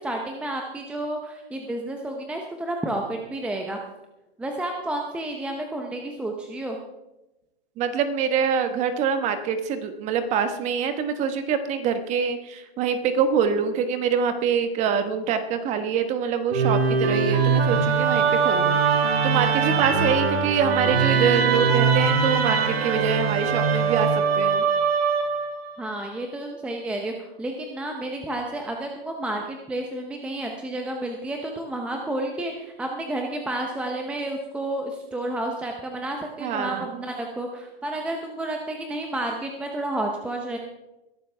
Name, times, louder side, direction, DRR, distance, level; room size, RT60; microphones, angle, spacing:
voice 1, 0.0-3.8 4.4-6.8 25.8-40.6, right 1 dB, 5° right, 2 dB, 0.7 m, -31 dB
voice 2, 7.8-24.6 36.4-37.0, right 7 dB, 20° right, 9 dB, 1.2 m, -25 dB
Musical instrument, 16.5-25.7, right 5 dB, 75° right, 1.8 m, -22 dB
21.5 x 12.0 x 3.4 m, 0.99 s
hypercardioid pair, 150°, 31 cm